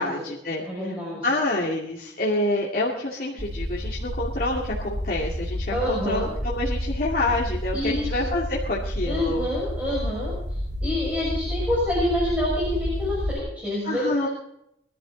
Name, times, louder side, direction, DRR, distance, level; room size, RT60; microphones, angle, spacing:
voice 1, 0.0-0.9 1.2-9.5 13.8-14.3, left 2 dB, 55° left, -4 dB, 2.3 m, -27 dB
voice 2, 0.6-1.3 5.7-6.3 7.7-8.3 9.0-10.3 10.8-14.3, left 1 dB, 10° right, -7 dB, 6.5 m, -27 dB
sound 1, 3.4-13.4, equal, 80° right, 5.6 m, -30 dB
22.0 x 12.5 x 4.0 m, 0.77 s
head